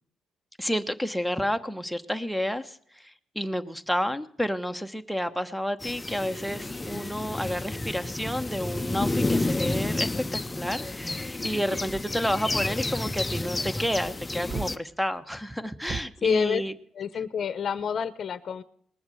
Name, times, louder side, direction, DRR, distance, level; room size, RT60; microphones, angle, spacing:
voice 1, 0.6-16.7, equal, ahead, 11 dB, 1.1 m, -30 dB
sound 1, 5.8-14.8, left 2 dB, 15° left, 0.7 m, -30 dB
sound 2, 11.7-12.2 12.7-13.2 14.5-14.8 15.8-16.0, right 4 dB, 35° right, 0.9 m, -36 dB
voice 2, 16.2-16.6 17.0-18.6, left 7 dB, 55° left, 14 dB, 0.8 m, -28 dB
20.0 x 7.1 x 7.8 m, 0.64 s
cardioid pair, 90°, 0 cm